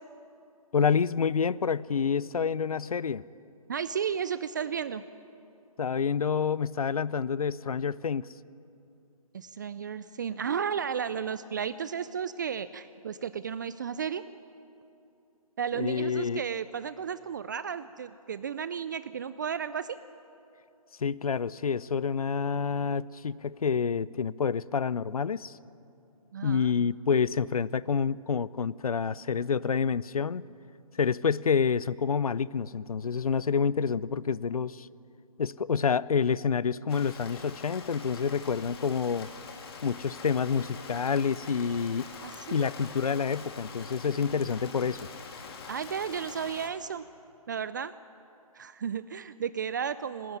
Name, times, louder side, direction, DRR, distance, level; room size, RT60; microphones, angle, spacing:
voice 1, 0.7-3.2 5.8-8.3 15.8-16.4 21.0-25.6 26.4-30.4 31.0-34.9 35.4-39.3 39.8-42.1 42.5-45.0, left 6 dB, 75° left, 21 dB, 0.6 m, -28 dB
voice 2, 3.7-5.0 9.3-14.3 15.6-20.0 26.3-26.7 42.2-42.7 45.7-47.1 47.5-47.9 48.5-50.4, right 7 dB, 30° right, 15 dB, 0.4 m, -33 dB
Rain, 36.9-46.7, left 4 dB, 40° left, 2.7 m, -44 dB
19.5 x 18.5 x 9.6 m, 2.8 s
figure-of-eight pair, 150°, 19 cm